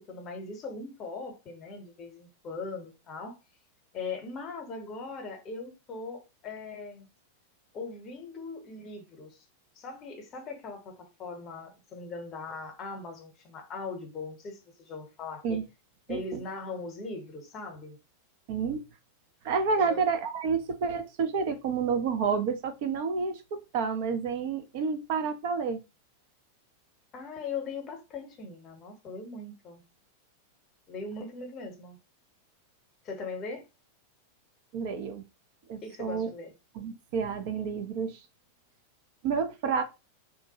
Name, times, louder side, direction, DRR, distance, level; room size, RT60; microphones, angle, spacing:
voice 1, 0.1-3.4 3.9-7.1 7.7-9.4 9.8-15.6 16.1-18.0 19.8-20.0 27.1-29.8 30.9-32.0 33.0-33.6 35.8-36.5, left 4 dB, 30° left, 0.8 m, -40 dB
voice 2, 16.1-16.4 18.5-18.8 19.4-23.4 23.7-25.8 34.7-35.2 35.7-36.3 36.8-38.2 39.2-39.8, right 5 dB, 50° right, 0.5 m, -29 dB
2.6 x 2.2 x 2.8 m
figure-of-eight pair, 90°, 0 cm